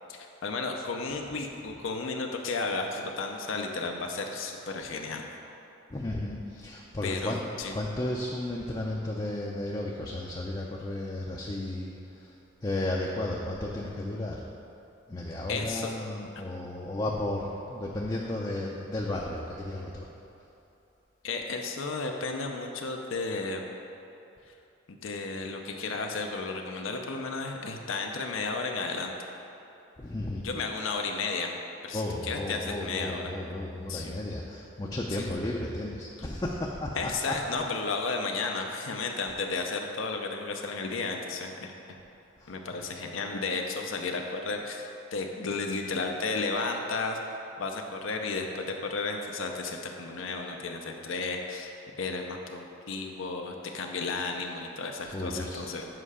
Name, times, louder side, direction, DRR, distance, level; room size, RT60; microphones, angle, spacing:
voice 1, 0.1-5.2 7.0-7.7 15.5-15.9 21.2-23.6 24.9-29.1 30.4-31.5 31.8-33.2 33.9-34.2 35.2-35.3 37.0-41.7 42.5-47.2 47.6-51.7 52.0-55.9, left 3 dB, 85° left, 2 dB, 0.6 m, -33 dB
voice 2, 5.9-7.4 7.7-12.3 12.6-14.4 15.1-20.1 30.0-30.4 31.9-37.0 37.3-37.6 42.4-42.5 55.0-55.6, left 1 dB, 20° left, -2 dB, 0.5 m, -33 dB
7.7 x 5.5 x 4.9 m, 2.8 s
head